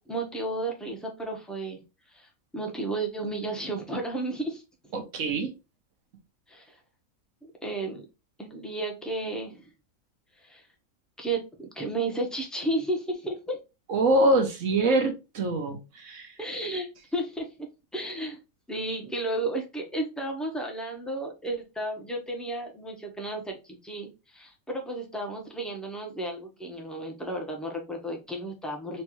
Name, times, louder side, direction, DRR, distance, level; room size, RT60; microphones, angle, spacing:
voice 1, 0.1-1.8 2.1-4.6 6.5-6.8 7.4-8.0 8.4-9.7 10.4-10.6 11.2-13.6 16.4-17.5 17.9-18.4 18.7-29.0, right 2 dB, ahead, 1 dB, 0.8 m, -33 dB
voice 2, 4.9-5.5 13.9-16.4, right 2 dB, 65° right, 4 dB, 1.2 m, -24 dB
4.4 x 2.6 x 3.0 m, 0.27 s
omnidirectional pair, 1.5 m